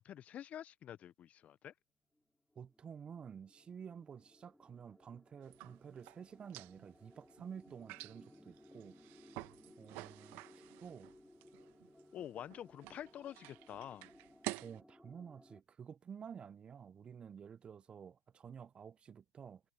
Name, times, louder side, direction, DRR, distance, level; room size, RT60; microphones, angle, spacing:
voice 1, 0.0-1.7 10.4-10.5 12.1-14.1, left 10 dB, 30° left, 1.1 m, -48 dB
sound 1, 2.2-2.3 2.5-15.6, left 1 dB, 5° left, 4.3 m, -62 dB
voice 2, 2.5-9.0 9.8-11.1 14.6-19.6, right 7 dB, 20° right, 1.0 m, -51 dB
sound 2, 5.4-14.8, right 23 dB, 45° right, 1.6 m, -50 dB
hypercardioid pair, 95°, 5 cm